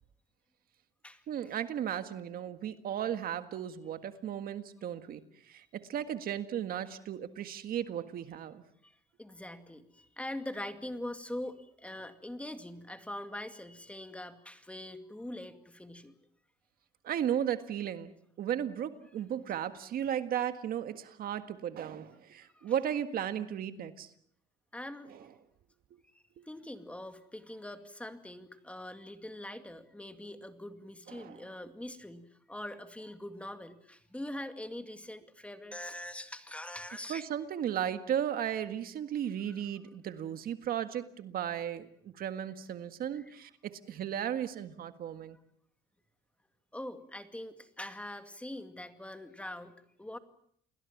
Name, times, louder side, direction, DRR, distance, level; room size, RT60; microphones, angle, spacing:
voice 1, 1.3-5.2 5.5-8.6 17.0-18.1 18.4-24.1 25.1-25.3 31.1-31.5 37.1-45.4, right 10 dB, 60° right, 10 dB, 1.7 m, -35 dB
voice 2, 9.2-16.1 22.5-22.7 24.7-25.3 26.5-37.2 43.1-43.3 46.7-49.7 50.0-50.2, left 1 dB, 5° left, 8 dB, 2.2 m, -43 dB
29.0 x 21.0 x 7.3 m, 0.66 s
cardioid pair, 110°, 17 cm